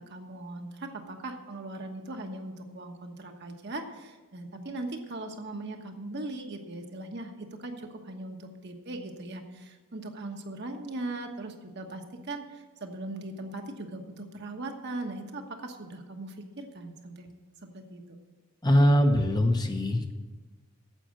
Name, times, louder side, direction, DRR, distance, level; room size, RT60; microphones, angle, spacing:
voice 1, 0.0-17.3 17.6-18.0, right 2 dB, 50° right, 4 dB, 1.2 m, -39 dB
voice 2, 18.6-20.1, equal, 20° left, 5 dB, 0.8 m, -22 dB
9.1 x 7.7 x 7.7 m, 1.3 s
head